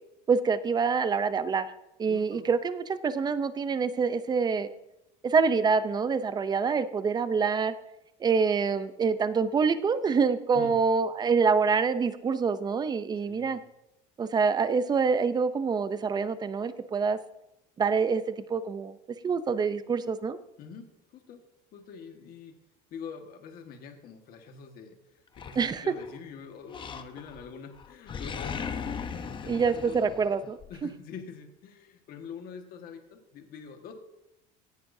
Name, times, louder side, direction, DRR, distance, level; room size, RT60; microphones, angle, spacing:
voice 1, 0.3-1.7 2.0-4.7 5.2-7.7 8.2-13.6 14.2-17.2 17.8-19.0 19.2-20.4 25.6-25.8 29.5-30.6, right 5 dB, 20° right, 13 dB, 0.6 m, -26 dB
voice 2, 2.1-2.5 10.5-10.8 13.2-13.6 20.6-21.4 21.7-22.6 22.9-30.0 30.7-33.9, left 6 dB, 50° left, 4 dB, 1.7 m, -45 dB
Animal, 25.4-26.2 26.7-27.5 27.8-30.7, left 6 dB, 25° left, 0.8 m, -38 dB
17.5 x 10.5 x 2.7 m, 0.89 s
cardioid pair, 145°, 20 cm